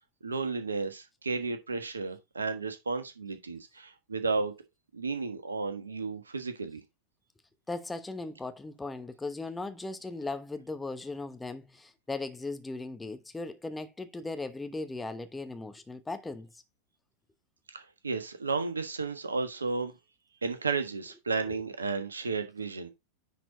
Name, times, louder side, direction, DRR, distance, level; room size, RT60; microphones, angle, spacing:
voice 1, 0.2-4.5 4.9-6.8 17.7-19.9 20.4-22.9, right 4 dB, 75° right, 1.4 m, -33 dB
voice 2, 7.7-16.5 21.4-21.6, left 3 dB, 10° left, 1.0 m, -38 dB
10.0 x 4.4 x 3.8 m
figure-of-eight pair, 90°, 0 cm